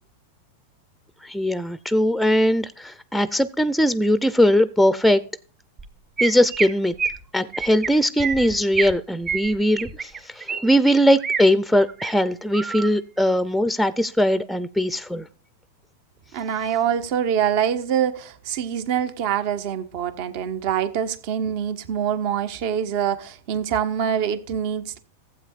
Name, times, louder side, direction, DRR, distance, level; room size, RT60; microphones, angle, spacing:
voice 1, 1.2-5.2 6.2-6.9 7.3-15.3, equal, ahead, 0.5 m, -20 dB
Chirp tweet, 5.8-5.9 6.2-6.7 7.0-7.2 7.5-7.9 8.2-8.9 9.3-10.6 10.9-11.4 11.8-12.1 12.5-12.9, right 6 dB, 25° right, 1.7 m, -27 dB
voice 2, 16.3-25.0, right 8 dB, 55° right, 1.2 m, -25 dB
15.5 x 8.2 x 2.5 m
hypercardioid pair, 115°, 0 cm